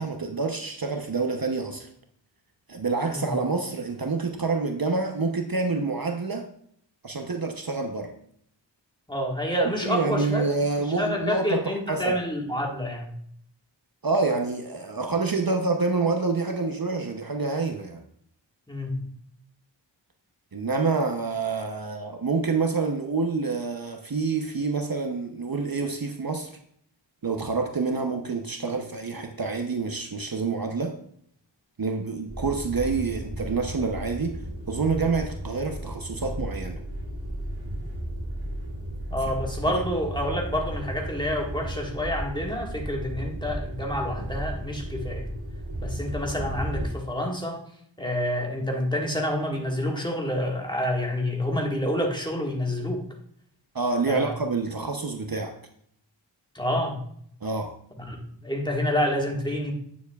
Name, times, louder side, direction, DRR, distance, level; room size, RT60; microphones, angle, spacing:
voice 1, 0.0-1.9 2.7-6.5 7.0-8.1 9.8-12.2 14.0-18.0 20.5-26.6 27.2-31.0 31.8-36.8 39.7-39.8 53.7-55.6 57.4-57.7, right 4 dB, 50° right, 0.8 m, -27 dB
voice 2, 9.1-10.4 11.0-13.1 18.7-19.1 39.1-45.3 45.8-47.6 48.0-53.0 54.1-54.3 56.5-57.0 58.0-58.2 58.4-59.7, left 1 dB, 10° left, 1.6 m, -28 dB
sound 1, 32.3-46.9, right 1 dB, 75° right, 2.3 m, -34 dB
8.9 x 7.2 x 2.3 m
wide cardioid pair, 55°, 46 cm